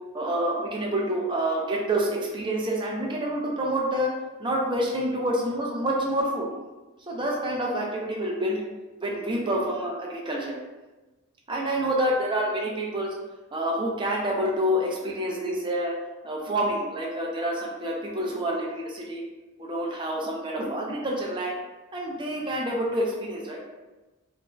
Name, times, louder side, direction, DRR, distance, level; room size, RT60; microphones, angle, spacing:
voice 1, 0.1-4.1 4.4-6.5 7.1-8.6 9.0-10.6 11.5-13.1 13.5-15.9 16.2-19.2 19.6-21.6 21.9-23.6, right 1 dB, 20° right, -2 dB, 0.4 m, -27 dB
3.2 x 2.5 x 2.2 m, 1.1 s
head